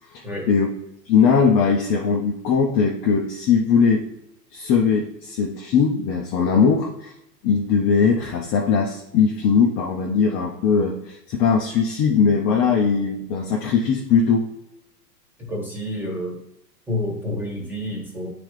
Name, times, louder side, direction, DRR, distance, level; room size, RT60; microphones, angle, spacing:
voice 1, 0.1-0.7 1.1-4.1 4.5-7.1 7.4-14.5, left 6 dB, 25° left, -1 dB, 0.7 m, -20 dB
voice 2, 15.4-16.4 16.9-18.3, left 1 dB, 5° right, -2 dB, 1.6 m, -29 dB
8.8 x 3.9 x 3.2 m, 0.86 s
hypercardioid pair, 130°, 49 cm